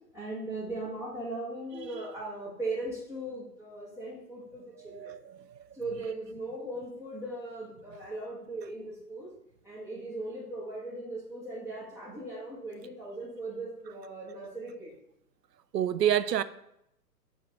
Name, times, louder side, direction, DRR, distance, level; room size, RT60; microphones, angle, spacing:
voice 1, 0.1-5.1 5.7-9.4 9.6-14.9, right 2 dB, 5° right, 1.5 m, -38 dB
voice 2, 4.8-5.7 15.7-16.4, right 10 dB, 80° right, 0.6 m, -29 dB
7.9 x 3.7 x 3.5 m
figure-of-eight pair, 125°, 49 cm